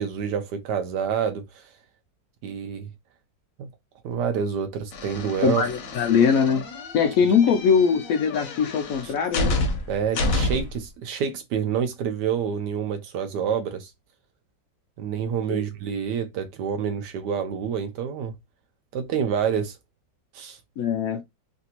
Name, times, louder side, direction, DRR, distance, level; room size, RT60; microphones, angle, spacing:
voice 1, 0.0-1.6 2.4-2.9 3.6-3.7 4.0-5.6 9.0-9.1 9.9-13.9 15.0-18.3 18.9-19.8 20.3-20.6, right 7 dB, 75° right, 1.1 m, -27 dB
sound 1, 4.9-10.8, left 2 dB, 60° left, 0.9 m, -29 dB
voice 2, 5.4-6.6 6.9-9.6 15.5-15.6 20.8-21.2, left 6 dB, 85° left, 0.7 m, -21 dB
3.3 x 2.5 x 2.8 m
omnidirectional pair, 2.0 m